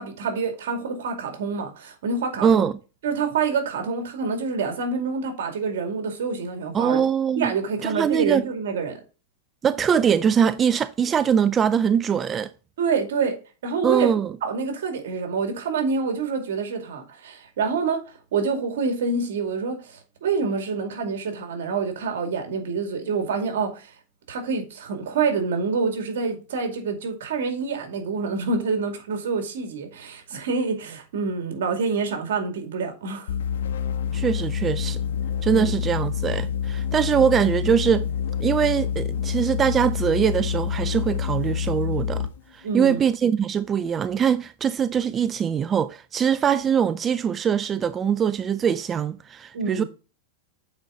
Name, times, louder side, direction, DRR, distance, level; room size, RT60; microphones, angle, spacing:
voice 1, 0.0-2.7 3.0-7.0 7.4-9.0 12.8-13.4 13.6-14.1 14.4-23.9 24.3-33.3 35.5-35.7 42.6-43.0 49.5-49.9, right 5 dB, 75° right, 2.3 m, -27 dB
voice 2, 2.4-2.7 6.7-7.5 7.8-8.4 9.6-12.5 13.8-14.3 34.1-35.0 35.4-38.1 38.4-42.3 42.5-49.8, right 7 dB, 25° right, 0.3 m, -22 dB
sound 1, 33.3-42.4, left 8 dB, 80° left, 1.1 m, -27 dB
8.6 x 4.6 x 3.8 m
hypercardioid pair, 130°, 0 cm